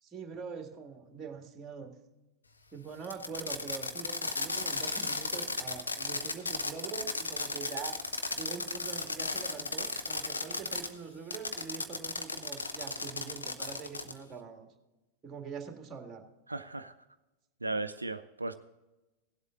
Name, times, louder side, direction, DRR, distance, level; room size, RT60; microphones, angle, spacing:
voice 1, 0.0-1.9 2.7-8.0 8.3-14.7 15.2-16.2, right 6 dB, 20° right, 4 dB, 1.9 m, -44 dB
Fireworks, 3.0-10.9 11.3-14.2, left 3 dB, 80° left, 0.9 m, -35 dB
voice 2, 16.5-16.9 17.6-18.6, right 2 dB, 80° right, 10 dB, 0.4 m, -36 dB
17.0 x 8.0 x 3.8 m, 1.1 s
figure-of-eight pair, 90°, 0 cm